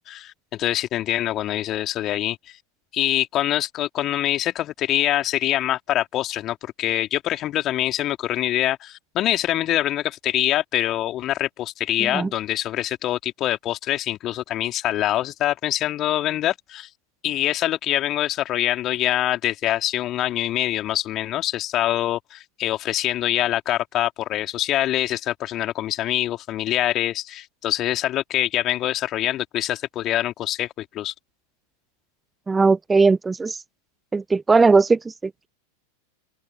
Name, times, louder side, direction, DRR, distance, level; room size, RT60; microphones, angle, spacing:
voice 1, 0.0-2.6 2.9-16.9 17.2-31.1, left 13 dB, 35° left, 3.1 m, -24 dB
voice 2, 32.5-33.6 34.1-35.5, right 4 dB, 10° right, 1.2 m, -19 dB
open air
figure-of-eight pair, 90°, 0 cm